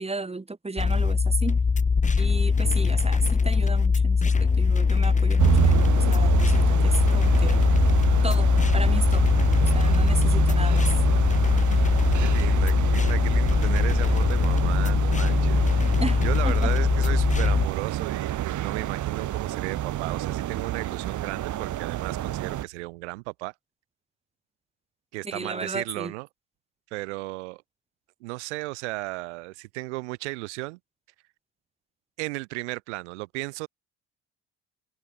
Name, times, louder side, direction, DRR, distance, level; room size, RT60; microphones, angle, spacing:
voice 1, 0.0-1.6 2.2-7.6 8.2-8.5 8.7-9.2 9.7-10.9 16.0-16.2 16.4-16.7 25.2-26.1, right 3 dB, 20° right, 4.8 m, -34 dB
sound 1, 0.8-17.7, left 5 dB, 20° left, 1.1 m, -21 dB
sound 2, 5.4-22.6, right 13 dB, 60° right, 2.3 m, -28 dB
voice 2, 10.7-11.4 12.2-23.5 25.1-26.3 26.9-27.6 28.2-30.8 32.2-33.7, right 24 dB, 90° right, 4.2 m, -35 dB
open air
supercardioid pair, 70°, 34 cm